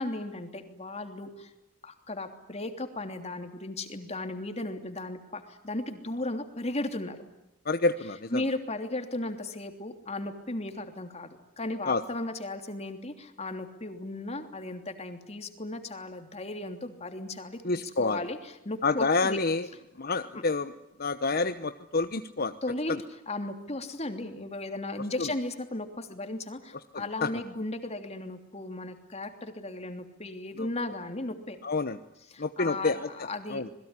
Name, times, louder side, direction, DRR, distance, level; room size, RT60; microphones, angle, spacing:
voice 1, 0.0-1.5 1.8-7.2 8.3-19.4 22.6-23.0 23.3-31.6 32.3-33.6, left 2 dB, 30° left, 6 dB, 3.1 m, -36 dB
voice 2, 7.6-8.4 11.9-12.0 17.6-18.3 18.8-19.7 20.0-20.7 21.0-22.6 22.9-23.0 25.2-25.3 26.9-27.3 30.6-30.7 31.6-32.0 32.4-33.1 33.5-33.7, left 3 dB, 50° left, 9 dB, 1.0 m, -28 dB
27.5 x 21.5 x 9.8 m, 0.89 s
head